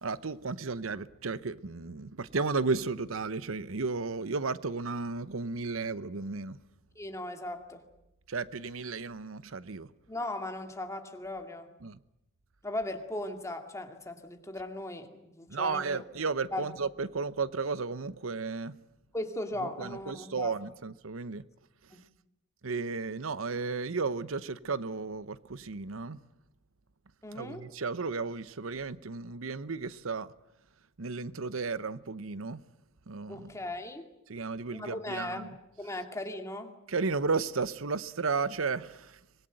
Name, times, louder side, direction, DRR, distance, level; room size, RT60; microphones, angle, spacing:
voice 1, 0.0-6.6 8.3-9.9 11.8-12.0 15.5-18.7 19.6-21.4 21.8-22.0 22.6-26.2 27.3-30.3 31.0-32.6 33.1-33.5 34.3-35.6 36.9-39.2, right 4 dB, 90° right, 0.9 m, -34 dB
voice 2, 6.9-7.8 10.1-11.7 12.6-16.0 16.5-16.7 19.1-20.5 21.9-22.1 27.2-27.6 33.3-34.1 34.7-35.5 35.8-36.7, left 1 dB, 15° left, 2.4 m, -38 dB
24.5 x 21.5 x 9.1 m
head